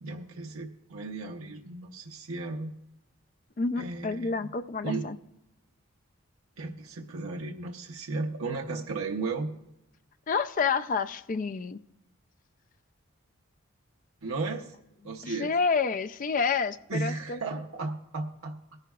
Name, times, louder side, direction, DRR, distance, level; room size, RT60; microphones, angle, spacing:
voice 1, 0.0-2.7 3.8-4.5 4.8-5.1 6.6-9.5 14.2-14.8 15.0-15.5 16.9-18.6, right 3 dB, 80° right, 2 dB, 0.8 m, -35 dB
voice 2, 3.6-5.2 10.3-11.8 15.2-17.4, left 5 dB, 40° left, 12 dB, 0.4 m, -29 dB
18.5 x 10.5 x 2.3 m, 0.88 s
head